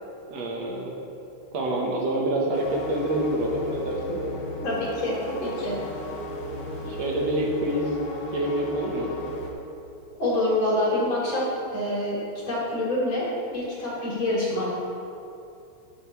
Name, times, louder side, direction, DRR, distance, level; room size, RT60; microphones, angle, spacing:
voice 1, 0.3-1.0 1.5-4.2 6.9-8.0 8.3-9.1, right 1 dB, 65° right, -1 dB, 2.2 m, -27 dB
sound 1, 2.5-9.5, left 1 dB, 75° left, 2.7 m, -35 dB
voice 2, 4.6-5.8 10.1-12.2 12.5-13.2 13.5-14.7, left 1 dB, 45° left, -6 dB, 3.2 m, -26 dB
13.0 x 10.0 x 3.1 m, 2.7 s
omnidirectional pair, 3.3 m